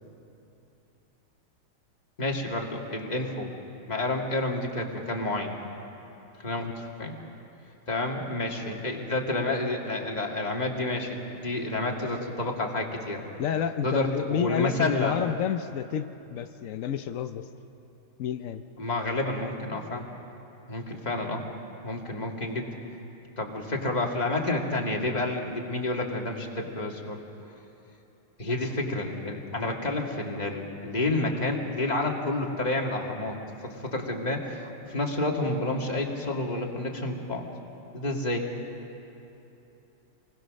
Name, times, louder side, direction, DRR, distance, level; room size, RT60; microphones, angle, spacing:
voice 1, 2.2-3.5 3.9-5.6 6.4-7.1 7.9-13.2 13.8-15.2 18.8-20.0 20.7-21.4 21.8-22.7 23.4-27.2 28.4-33.3 33.6-37.5 37.9-38.5, left 2 dB, 20° left, 0 dB, 2.1 m, -29 dB
voice 2, 13.4-17.5 18.2-18.6, left 8 dB, 85° left, 8 dB, 0.7 m, -30 dB
27.5 x 20.5 x 6.4 m, 3.0 s
omnidirectional pair, 2.2 m